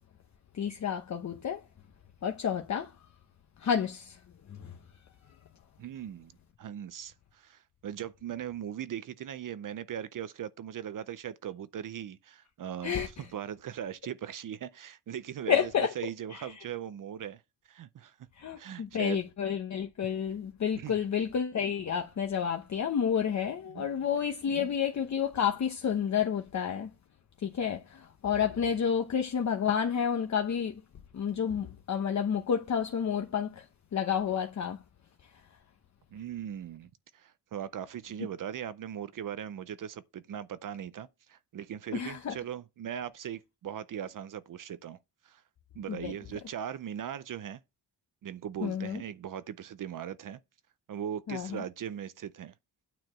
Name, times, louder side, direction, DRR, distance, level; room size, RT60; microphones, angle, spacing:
voice 1, 0.5-1.6 2.2-2.9 3.6-4.2 4.5-4.7 12.8-13.2 15.5-15.9 16.3-16.5 18.4-26.9 27.4-30.8 31.1-33.6 33.9-34.8 41.9-42.4 45.9-46.1 48.6-49.0 51.3-51.6, left 8 dB, 40° left, 1.0 m, -30 dB
voice 2, 5.8-6.3 6.6-12.9 13.3-15.7 16.0-17.4 17.7-18.2 18.6-19.2 20.8-21.0 23.7-23.9 36.1-45.0 45.2-45.4 45.8-47.6 48.2-50.4 50.9-52.5, right 9 dB, 50° right, 0.6 m, -39 dB
9.2 x 4.8 x 7.4 m
wide cardioid pair, 180°, 41 cm